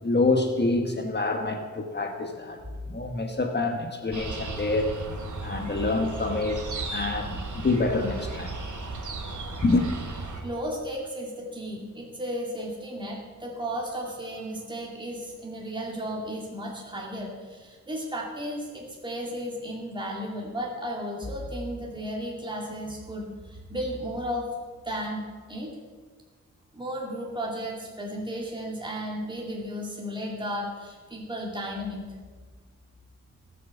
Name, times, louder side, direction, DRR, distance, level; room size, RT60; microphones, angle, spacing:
voice 1, 0.0-2.6 2.9-4.9 5.4-6.6 6.9-8.6 9.6-9.9, left 3 dB, 35° left, 4 dB, 1.2 m, -26 dB
sound 1, 4.1-10.4, right 3 dB, 90° right, 2.5 m, -35 dB
voice 2, 10.4-24.5 24.8-25.7 26.7-32.1, equal, 15° right, -3 dB, 2.5 m, -34 dB
18.0 x 7.6 x 7.0 m, 1.5 s
wide cardioid pair, 135°, 29 cm